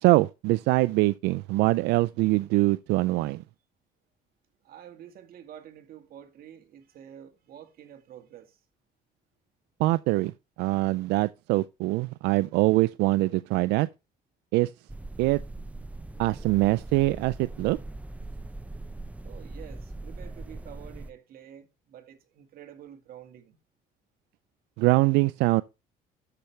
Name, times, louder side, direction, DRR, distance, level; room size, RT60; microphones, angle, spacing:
voice 1, 0.0-3.4 9.8-13.9 14.5-14.7 15.2-15.4 16.2-17.8 24.8-25.6, right 20 dB, 90° right, 0.4 m, -23 dB
voice 2, 4.6-8.6 19.2-23.6, right 10 dB, 60° right, 1.7 m, -48 dB
sound 1, 14.9-21.1, right 2 dB, 10° right, 0.7 m, -40 dB
13.5 x 5.8 x 3.2 m
cardioid pair, 110°, 17 cm